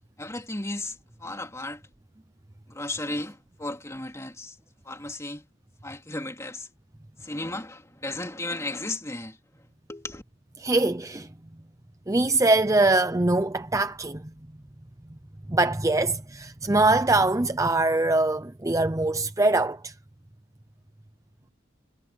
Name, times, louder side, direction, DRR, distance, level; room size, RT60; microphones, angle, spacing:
voice 1, 0.2-1.8 2.7-4.6 4.8-5.4 5.8-6.7 7.2-9.4 9.9-10.2, left 2 dB, 15° left, 2.9 m, -34 dB
voice 2, 10.6-11.3 12.1-14.2 15.5-19.9, right 2 dB, 15° right, 0.6 m, -23 dB
head